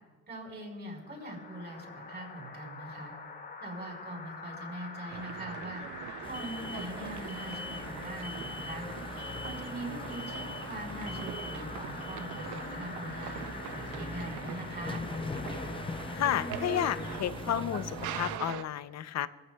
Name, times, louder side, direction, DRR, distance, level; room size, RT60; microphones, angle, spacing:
voice 1, 0.3-3.1 3.6-5.8 6.2-8.8 9.4-13.4 13.7-15.1, right 1 dB, 35° right, -1 dB, 4.8 m, -42 dB
sound 1, 0.9-17.2, left 4 dB, 35° left, 2.0 m, -45 dB
sound 2, 5.1-18.6, right 11 dB, 80° right, 0.6 m, -43 dB
sound 3, 6.2-18.4, left 3 dB, 20° left, 0.5 m, -41 dB
voice 2, 16.1-19.3, left 11 dB, 60° left, 14 dB, 0.6 m, -31 dB
26.0 x 14.5 x 2.3 m, 1.4 s
cardioid pair, 90°, 30 cm